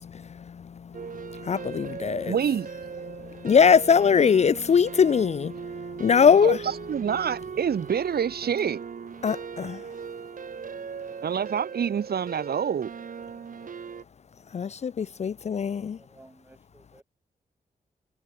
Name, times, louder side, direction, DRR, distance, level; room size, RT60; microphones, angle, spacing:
voice 1, 0.0-2.3 3.1-6.6 9.2-9.8 14.5-16.0, left 6 dB, 45° left, 0.5 m, -22 dB
sound 1, 0.9-14.0, right 6 dB, 55° right, 3.4 m, -39 dB
voice 2, 2.3-2.7 6.4-6.6 6.9-8.8 11.2-12.9, right 8 dB, 80° right, 3.4 m, -27 dB
voice 3, 15.4-17.0, right 1 dB, 10° right, 5.2 m, -56 dB
wide cardioid pair, 150°, 16 cm